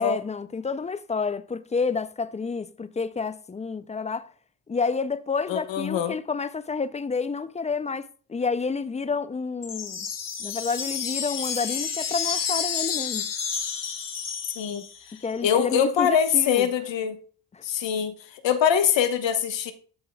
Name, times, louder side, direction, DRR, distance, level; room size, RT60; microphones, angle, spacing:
voice 1, 0.0-4.3 4.7-10.1 10.4-13.3 15.2-16.7 17.5-17.6, left 4 dB, 15° left, 0.3 m, -29 dB
voice 2, 5.5-6.2 14.6-14.8 15.4-17.2 17.6-18.1 18.4-19.7, left 8 dB, 70° left, 1.2 m, -23 dB
sound 1, 9.6-15.1, left 7 dB, 45° left, 1.2 m, -30 dB
13.5 x 5.5 x 2.2 m
cardioid pair, 90°, 46 cm